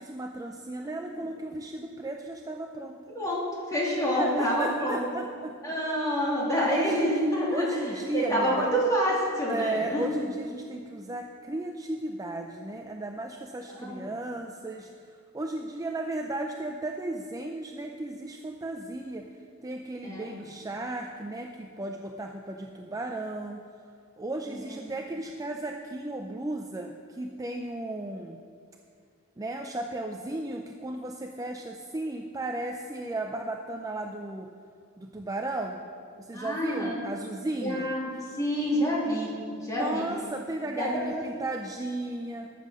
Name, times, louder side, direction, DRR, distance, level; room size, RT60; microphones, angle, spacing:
voice 1, 0.0-3.2 4.1-5.6 6.6-7.1 7.5-8.7 9.5-14.9 15.3-19.2 19.6-23.6 24.2-28.4 29.4-34.5 35.0-35.8 36.2-37.9 39.7-42.5, right 2 dB, 15° right, 3 dB, 0.4 m, -35 dB
voice 2, 3.7-5.1 5.6-7.8 8.1-10.1 13.7-14.1 20.0-20.3 24.5-24.9 36.3-37.0 37.6-38.1 38.4-39.3 39.6-40.0 40.6-41.0, equal, 15° left, -5 dB, 2.8 m, -28 dB
13.5 x 7.5 x 6.3 m, 2.3 s
head